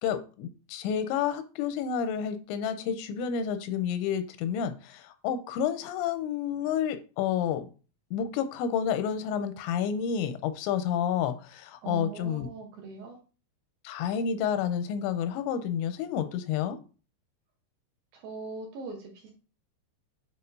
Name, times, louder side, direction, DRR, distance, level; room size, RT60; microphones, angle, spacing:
voice 1, 0.0-7.7 8.1-12.5 13.8-16.8, left 8 dB, 90° left, 10 dB, 2.9 m, -30 dB
voice 2, 11.8-13.2 18.1-19.3, right 5 dB, 70° right, 1 dB, 2.5 m, -40 dB
8.6 x 4.3 x 2.7 m, 0.35 s
omnidirectional pair, 5.1 m